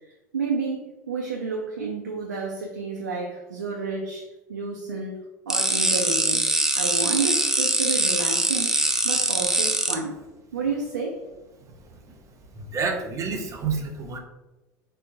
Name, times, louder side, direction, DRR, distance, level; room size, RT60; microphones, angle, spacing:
voice 1, 0.3-5.2 5.5-6.5 6.8-10.2 10.5-11.2, right 4 dB, 90° right, 0 dB, 0.4 m, -30 dB
sound 1, 5.5-9.9, right 1 dB, 5° right, 0.3 m, -23 dB
voice 2, 12.7-14.2, right 5 dB, 35° right, 2 dB, 0.7 m, -28 dB
3.7 x 2.1 x 2.7 m, 1.1 s
hypercardioid pair, 75°, 9 cm